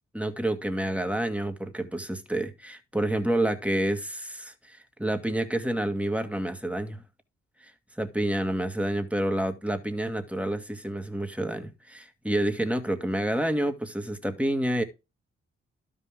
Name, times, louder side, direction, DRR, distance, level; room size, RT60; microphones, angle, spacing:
voice 1, 0.1-7.0 7.6-7.7 8.0-14.8, right 1 dB, 5° right, 1.9 m, -29 dB
12.5 x 5.6 x 3.7 m
supercardioid pair, 45°, 30 cm